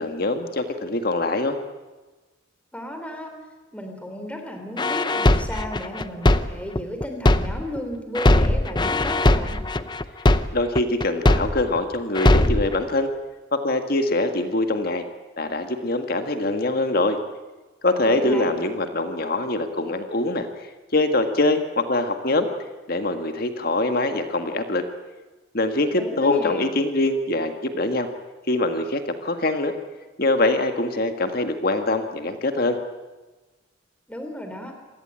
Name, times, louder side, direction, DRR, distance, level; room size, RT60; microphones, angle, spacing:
voice 1, 0.0-1.6 10.5-13.1 13.5-15.0 15.4-17.2 17.8-20.5 20.9-22.5 22.9-24.8 25.5-28.1 28.5-29.7 30.2-32.8, left 2 dB, 50° left, 7 dB, 1.8 m, -23 dB
voice 2, 2.7-3.3 3.7-9.6 18.0-18.5 25.9-26.7 34.1-34.7, equal, 5° left, 5 dB, 3.5 m, -34 dB
sound 1, 4.8-7.8 8.1-11.8 12.1-12.7, left 1 dB, 20° left, 0.7 m, -19 dB
26.5 x 18.5 x 9.0 m, 1.2 s
head